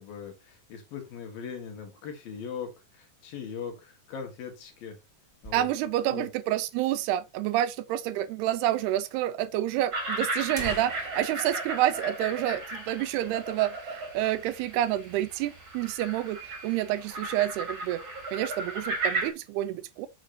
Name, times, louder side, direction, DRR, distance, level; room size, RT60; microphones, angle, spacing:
voice 1, 0.0-5.0 5.4-5.7 6.1-6.3, left 7 dB, 60° left, 3.6 m, -40 dB
sound 1, 4.4-6.2 6.5-6.6 6.8-6.9 7.6-7.7 8.6-8.7 9.0-9.1 9.9-10.0 10.3-12.9 13.2-13.4 13.8-14.0 14.5-15.0, left 1 dB, 15° left, 1.1 m, -45 dB
voice 2, 5.5-18.0 18.3-20.1, right 13 dB, 80° right, 2.6 m, -28 dB
sound 2, 9.9-19.3, right 2 dB, 35° right, 3.0 m, -35 dB
8.8 x 6.6 x 2.9 m
omnidirectional pair, 4.8 m